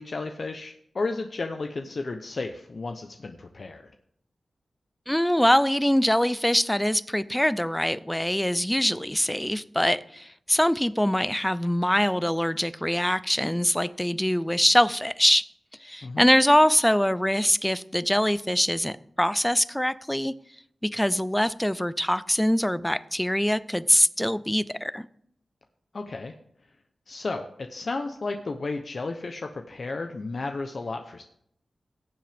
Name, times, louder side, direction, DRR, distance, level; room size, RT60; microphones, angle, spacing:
voice 1, 0.0-3.9 16.0-16.3 25.9-26.3 27.1-31.2, left 3 dB, 60° left, 5 dB, 0.8 m, -33 dB
voice 2, 5.1-15.4 15.8-20.3 20.8-25.0, equal, 5° left, 17 dB, 0.5 m, -23 dB
17.0 x 7.5 x 3.5 m, 0.70 s
wide cardioid pair, 70°, 0 cm